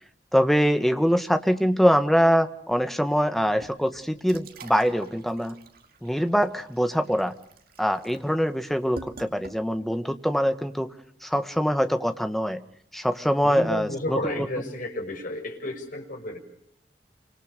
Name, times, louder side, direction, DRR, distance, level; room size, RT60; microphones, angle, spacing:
voice 1, 0.3-5.5 6.0-7.3 7.8-10.9 11.2-12.6 12.9-14.7, equal, ahead, 8 dB, 1.7 m, -23 dB
sound 1, 3.6-10.0, right 3 dB, 60° right, 2.6 m, -47 dB
voice 2, 13.4-16.4, left 1 dB, 50° left, 3 dB, 6.4 m, -32 dB
27.5 x 25.5 x 6.8 m, 0.70 s
head